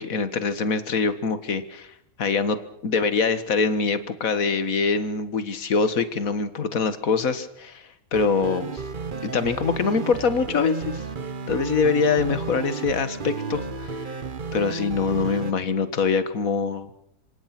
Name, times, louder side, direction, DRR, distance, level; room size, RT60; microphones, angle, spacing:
voice 1, 0.0-1.9 2.2-2.6 2.8-8.8 9.2-11.0 11.5-14.1 14.5-16.9, left 5 dB, 45° left, 12 dB, 2.0 m, -24 dB
sound 1, 8.1-15.5, right 4 dB, 30° right, 1.1 m, -33 dB
27.5 x 25.0 x 6.1 m, 0.76 s
omnidirectional pair, 2.1 m